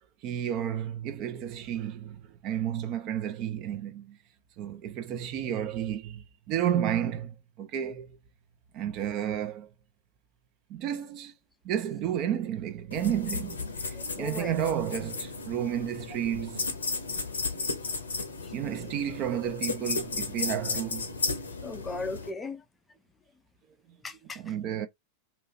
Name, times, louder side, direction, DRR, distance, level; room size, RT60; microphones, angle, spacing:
voice 1, 0.2-4.2 4.6-8.2 8.7-9.7 10.7-11.3 11.6-16.7 18.5-21.2 24.4-24.9, right 10 dB, 40° right, 0.6 m, -32 dB
sound 1, 12.9-22.3, left 4 dB, 70° left, 0.8 m, -34 dB
voice 2, 13.9-14.6 17.8-17.9 18.4-18.5 21.6-22.6 24.0-24.5, left 3 dB, 15° left, 0.5 m, -38 dB
2.8 x 2.7 x 4.2 m
figure-of-eight pair, 90°, 0 cm